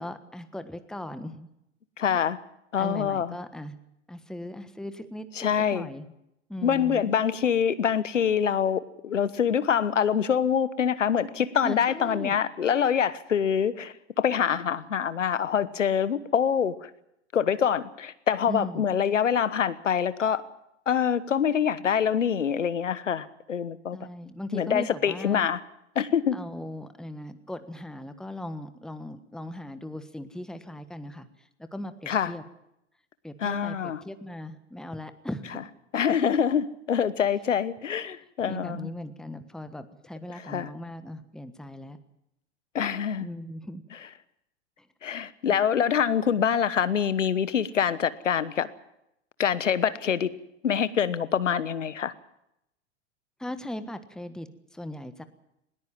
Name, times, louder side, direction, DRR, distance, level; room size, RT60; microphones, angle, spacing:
voice 1, 0.0-1.5 2.1-2.2 2.8-3.8 4.1-6.1 6.5-7.1 11.6-12.4 18.5-18.9 23.9-25.4 26.3-32.4 33.2-35.6 38.4-42.0 43.2-43.8 44.8-44.9 45.4-45.6 53.4-55.2, left 1 dB, ahead, 10 dB, 1.4 m, -38 dB
voice 2, 2.0-2.4 2.7-3.3 5.4-5.9 6.6-16.9 17.3-20.4 20.9-24.0 24.5-25.6 25.9-26.4 32.1-32.3 33.4-34.0 35.9-38.9 40.4-40.7 42.7-43.3 45.0-48.7 49.4-50.3 50.6-52.1, left 8 dB, 80° left, 16 dB, 1.2 m, -25 dB
20.5 x 19.0 x 7.5 m, 0.81 s
figure-of-eight pair, 95°, 37 cm